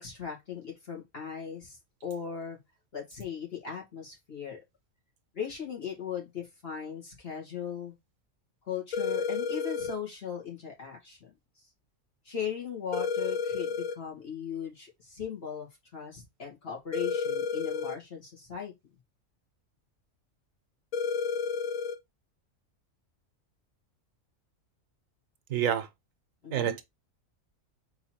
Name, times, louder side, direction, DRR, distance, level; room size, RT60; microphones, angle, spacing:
voice 1, 0.0-2.6 2.9-4.6 5.3-7.9 8.7-11.3 12.3-18.7 26.4-26.8, left 7 dB, 45° left, 1.9 m, -38 dB
sound 1, 8.9-10.0 12.9-14.0 16.9-18.0 20.9-22.0, left 5 dB, 85° left, 1.3 m, -31 dB
voice 2, 25.5-25.9 26.5-26.8, right 9 dB, 75° right, 1.1 m, -27 dB
4.0 x 3.0 x 4.2 m
omnidirectional pair, 1.4 m